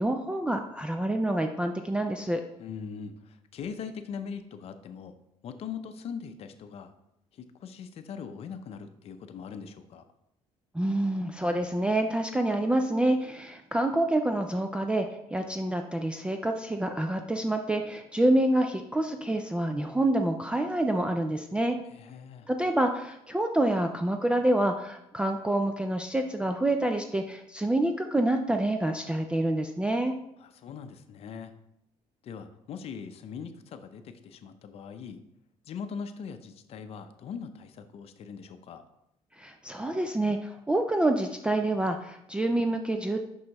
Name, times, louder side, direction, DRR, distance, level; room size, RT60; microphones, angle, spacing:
voice 1, 0.0-2.4 10.7-21.8 22.5-30.1 39.4-43.2, right 1 dB, 10° right, 5 dB, 0.4 m, -27 dB
voice 2, 2.6-5.1 5.4-6.9 7.3-10.0 21.9-22.5 30.4-31.5 32.2-35.2 35.6-38.8, left 6 dB, 50° left, 8 dB, 0.6 m, -41 dB
6.1 x 5.5 x 3.0 m, 0.81 s
cardioid pair, 115°, 13 cm